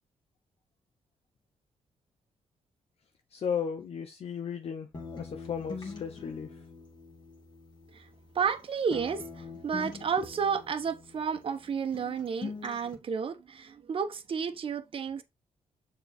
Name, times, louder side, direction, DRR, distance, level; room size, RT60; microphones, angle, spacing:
voice 1, 3.3-6.6, left 7 dB, 60° left, 0.9 m, -35 dB
sound 1, 4.9-8.6 8.9-11.7 11.9-12.9, left 4 dB, 40° left, 2.5 m, -44 dB
voice 2, 8.3-15.2, right 6 dB, 50° right, 1.2 m, -32 dB
6.8 x 4.1 x 4.2 m
cardioid pair, 85°, 12 cm